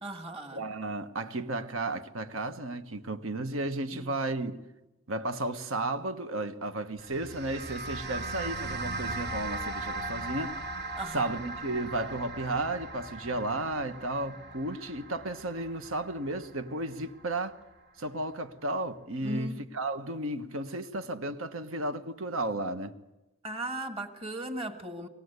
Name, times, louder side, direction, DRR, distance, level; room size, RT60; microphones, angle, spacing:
voice 1, 0.0-0.6 3.9-4.2 11.0-11.3 19.2-19.6 23.4-25.1, right 1 dB, 25° right, 1.8 m, -37 dB
voice 2, 0.5-4.6 5.1-10.6 11.1-17.6 18.0-22.9, right 2 dB, 75° right, 1.4 m, -33 dB
sound 1, 7.0-17.5, right 2 dB, 50° right, 1.5 m, -39 dB
24.0 x 20.0 x 8.1 m
head